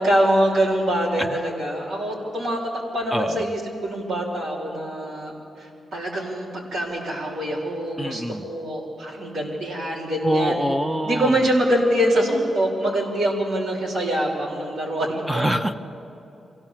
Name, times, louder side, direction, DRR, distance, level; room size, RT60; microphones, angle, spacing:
voice 1, 0.0-2.6 2.9-10.6 11.0-15.5, right 1 dB, 80° right, -3 dB, 4.1 m, -24 dB
voice 2, 3.1-3.4 8.0-8.5 10.2-11.4 15.3-15.7, equal, 10° right, 9 dB, 0.7 m, -25 dB
24.0 x 16.0 x 7.4 m, 2.9 s
cardioid pair, 105°, 0 cm